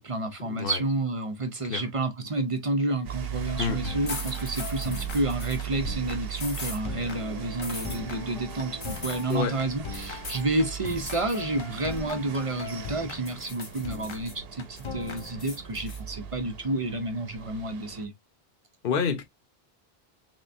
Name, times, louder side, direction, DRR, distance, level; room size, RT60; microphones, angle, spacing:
voice 1, 0.0-18.1, right 2 dB, 40° right, 0.6 m, -30 dB
sound 1, 3.0-18.1, right 9 dB, 70° right, 0.9 m, -39 dB
sound 2, 3.5-15.8, left 5 dB, 40° left, 0.5 m, -40 dB
sound 3, 4.1-5.6 6.3-6.8 7.6-8.0 8.8-9.4 9.9-10.5 10.9-11.4 11.8-12.9 13.3-14.3 14.8-16.0, left 2 dB, 85° left, 1.9 m, -40 dB
voice 2, 18.8-19.2, left 6 dB, 60° left, 1.0 m, -28 dB
3.6 x 3.3 x 2.5 m
omnidirectional pair, 1.1 m